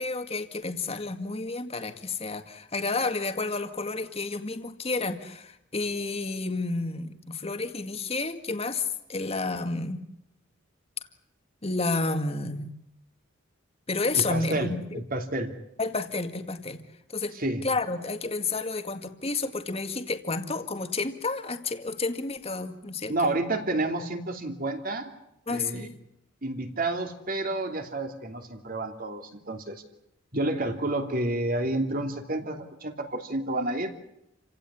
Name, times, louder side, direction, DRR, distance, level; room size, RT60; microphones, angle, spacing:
voice 1, 0.0-10.1 11.6-12.7 13.9-14.8 15.8-16.8 17.1-17.4 17.6-23.3 25.5-26.0, left 3 dB, 30° left, 7 dB, 2.0 m, -30 dB
voice 2, 14.1-15.5 17.3-17.6 23.1-25.1 25.5-25.9 26.4-29.8 30.3-33.9, right 2 dB, 45° right, 5 dB, 3.0 m, -30 dB
29.0 x 17.0 x 9.9 m, 0.83 s
head